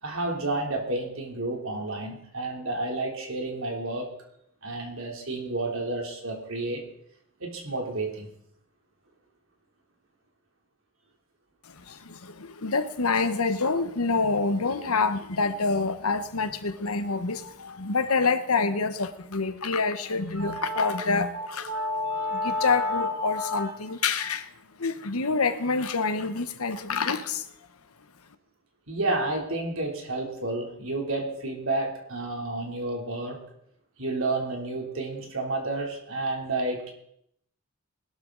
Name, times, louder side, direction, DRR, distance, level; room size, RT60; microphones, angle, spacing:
voice 1, 0.0-4.1 4.6-6.8 7.4-8.3 20.3-23.7 24.2-24.3 28.9-33.4 34.0-36.9, right 1 dB, 65° right, 1 dB, 3.3 m, -30 dB
voice 2, 11.9-21.7 22.4-24.5 24.8-27.4, left 4 dB, 80° left, 10 dB, 1.2 m, -27 dB
20.0 x 12.5 x 4.0 m, 0.72 s
head